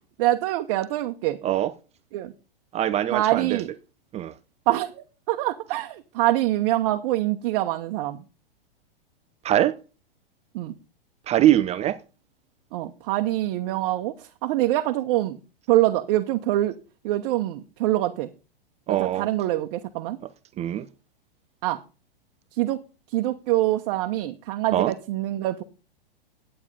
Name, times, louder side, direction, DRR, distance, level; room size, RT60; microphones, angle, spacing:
voice 1, 0.2-1.4 2.1-2.3 3.1-3.7 4.7-8.2 10.5-10.7 12.7-15.4 15.7-16.7 17.0-18.3 18.9-20.2 21.6-21.8 22.6-22.8 23.1-25.6, right 15 dB, 45° right, 1.0 m, -25 dB
voice 2, 2.7-3.6 4.1-4.3 9.4-9.8 11.3-12.0 18.9-19.3 20.6-20.9 24.7-24.9, right 12 dB, 20° right, 0.5 m, -22 dB
11.0 x 8.9 x 5.2 m
hypercardioid pair, 110°, 29 cm